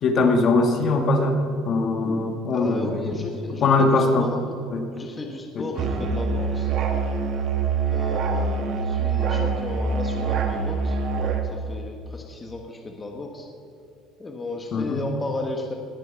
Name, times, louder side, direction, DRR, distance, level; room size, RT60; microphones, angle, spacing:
voice 1, 0.0-3.1 3.6-4.3 4.7-4.9 5.5-5.7 14.7-15.0, left 3 dB, 35° left, 5 dB, 1.5 m, -21 dB
voice 2, 2.5-4.4 4.9-6.7 7.9-11.0 11.4-13.5 14.2-15.7, left 2 dB, 15° left, 2 dB, 1.2 m, -34 dB
Musical instrument, 5.8-11.5, right 5 dB, 45° right, 1.5 m, -25 dB
20.0 x 9.1 x 5.8 m, 2.5 s
cardioid pair, 165°, 0 cm